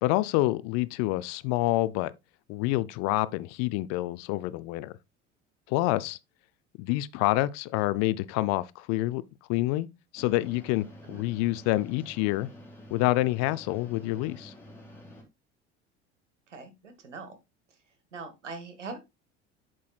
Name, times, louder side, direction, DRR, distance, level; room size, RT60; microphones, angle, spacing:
voice 1, 0.0-2.1 2.5-4.9 5.7-6.2 6.8-9.2 9.5-9.9 10.1-12.5 12.9-14.5, left 18 dB, 50° left, 0.5 m, -27 dB
sound 1, 10.2-15.2, left 1 dB, 5° left, 2.7 m, -48 dB
voice 2, 16.5-17.4 17.7-19.0, right 4 dB, 80° right, 1.3 m, -42 dB
8.2 x 6.2 x 2.3 m
figure-of-eight pair, 70°, 35 cm